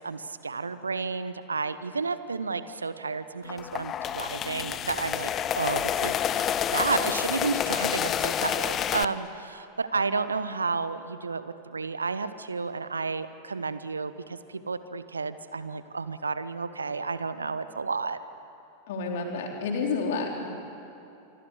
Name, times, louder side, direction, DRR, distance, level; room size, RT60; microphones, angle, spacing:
voice 1, 0.0-18.2, right 4 dB, 75° right, 13 dB, 1.0 m, -31 dB
sound 1, 3.5-9.0, left 9 dB, 30° left, 0.8 m, -28 dB
voice 2, 18.9-20.5, left 4 dB, 55° left, 2 dB, 4.1 m, -30 dB
26.0 x 24.0 x 8.5 m, 2.8 s
figure-of-eight pair, 90°, 0 cm